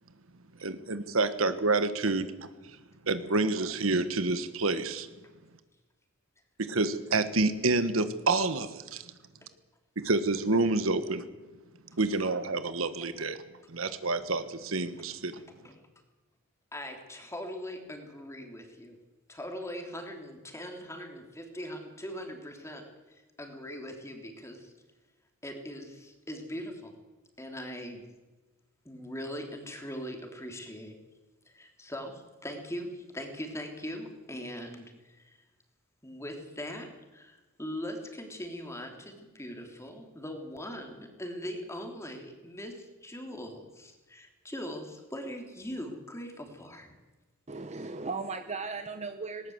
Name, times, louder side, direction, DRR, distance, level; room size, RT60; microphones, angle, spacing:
voice 1, 0.6-2.5 3.1-5.1 6.6-9.0 10.0-11.3 12.0-13.4 13.7-15.3, right 3 dB, 80° right, 11 dB, 1.4 m, -28 dB
voice 2, 16.7-18.9 19.3-24.7 25.4-26.9 27.4-28.0 28.8-30.9 31.4-35.4 36.0-36.9 37.1-46.9, equal, 15° left, 3 dB, 3.3 m, -41 dB
voice 3, 47.5-49.5, right 4 dB, 35° right, 9 dB, 0.9 m, -37 dB
19.0 x 19.0 x 8.0 m, 1.2 s
head